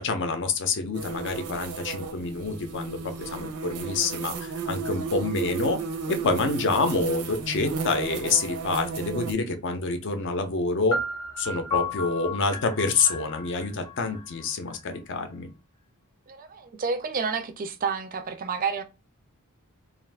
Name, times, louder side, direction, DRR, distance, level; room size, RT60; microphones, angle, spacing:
voice 1, 0.0-5.8 6.1-11.0 11.4-15.5, left 4 dB, 55° left, 0.6 m, -27 dB
sound 1, 0.9-9.3, right 5 dB, 90° right, 0.6 m, -33 dB
sound 2, 10.9-14.8, left 3 dB, 15° left, 0.8 m, -33 dB
voice 2, 16.3-18.8, right 5 dB, 40° right, 0.4 m, -30 dB
2.5 x 2.4 x 3.3 m
head